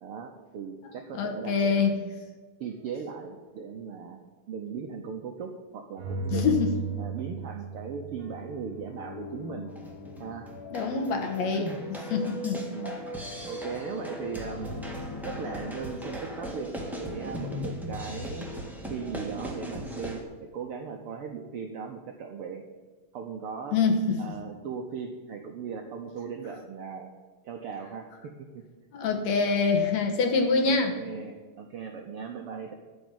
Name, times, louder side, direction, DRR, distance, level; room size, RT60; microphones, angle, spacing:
voice 1, 0.0-1.7 2.6-4.2 4.5-6.5 7.0-9.7 10.2-10.5 11.5-11.8 12.7-13.0 13.5-14.7 15.2-18.5 18.9-20.2 20.5-22.6 23.1-23.8 24.2-27.1 27.4-28.6 30.6-32.7, right 6 dB, 75° right, 3 dB, 1.3 m, -38 dB
voice 2, 1.1-2.0 6.3-6.7 10.7-11.7 12.1-12.6 23.7-24.4 28.9-31.0, left 4 dB, 65° left, 4 dB, 2.2 m, -25 dB
sound 1, 2.7-3.4 6.0-11.8 14.5-20.2, right 4 dB, 50° right, 2.7 m, -40 dB
sound 2, 8.9-15.7, left 6 dB, 85° left, 2.6 m, -45 dB
sound 3, 9.7-20.2, equal, ahead, 0.5 m, -38 dB
13.0 x 5.2 x 9.0 m, 1.4 s
omnidirectional pair, 3.7 m